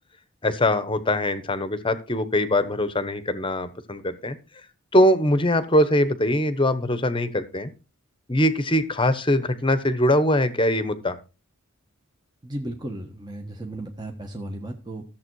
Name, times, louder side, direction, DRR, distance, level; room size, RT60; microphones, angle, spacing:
voice 1, 0.4-4.4 4.9-7.7 8.3-11.1, left 1 dB, 20° left, 12 dB, 1.1 m, -22 dB
voice 2, 12.4-15.0, right 1 dB, 20° right, 1 dB, 1.3 m, -35 dB
14.0 x 7.5 x 4.7 m, 0.32 s
head